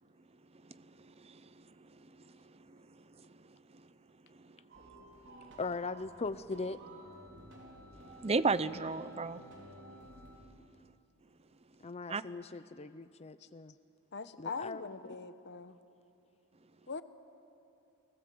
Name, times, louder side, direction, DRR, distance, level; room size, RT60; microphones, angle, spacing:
voice 1, 0.7-1.5 2.7-2.8 4.4-4.5 8.2-9.4 12.1-12.2, right 4 dB, 30° right, 0.6 m, -33 dB
sound 1, 4.7-10.4, right 1 dB, 55° right, 4.2 m, -53 dB
voice 2, 5.6-6.8 11.8-13.7 14.4-15.2, left 3 dB, 30° left, 0.6 m, -40 dB
voice 3, 14.1-15.8 16.9-17.0, left 4 dB, 50° left, 1.0 m, -41 dB
29.5 x 20.0 x 7.8 m
head